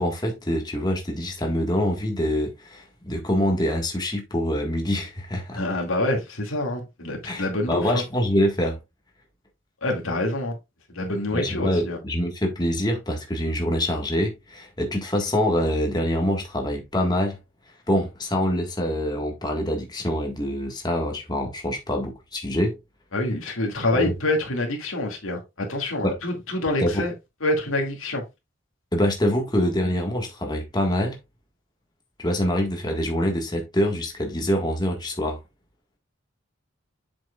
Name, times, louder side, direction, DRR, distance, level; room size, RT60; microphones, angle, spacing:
voice 1, 0.0-5.6 7.2-8.8 11.3-17.4 17.9-22.8 23.9-24.1 26.0-26.2 26.8-27.0 28.9-31.2 32.2-35.4, equal, 20° left, 1.6 m, -25 dB
voice 2, 5.5-8.0 9.8-10.6 10.9-12.0 23.1-27.1 27.4-28.2, left 1 dB, 90° left, 2.2 m, -26 dB
7.6 x 6.1 x 2.4 m
head